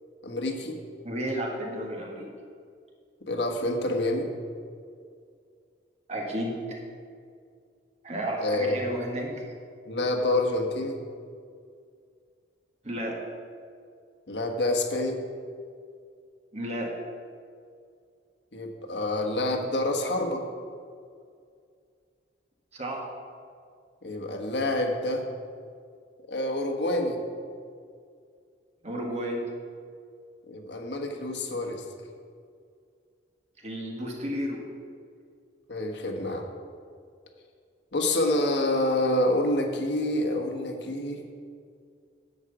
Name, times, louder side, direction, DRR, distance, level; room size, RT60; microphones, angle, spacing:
voice 1, 0.2-0.8 3.3-4.3 8.4-8.8 9.9-11.0 14.3-15.2 18.5-20.4 24.0-25.3 26.3-27.2 30.5-31.8 35.7-36.5 37.9-41.2, left 1 dB, 80° left, 2 dB, 1.3 m, -27 dB
voice 2, 1.0-2.3 6.1-6.8 8.0-9.3 12.8-13.2 16.5-16.9 22.7-23.1 28.8-29.5 33.6-34.6, right 1 dB, 40° right, -1 dB, 1.8 m, -32 dB
11.0 x 5.0 x 8.1 m, 2.2 s
head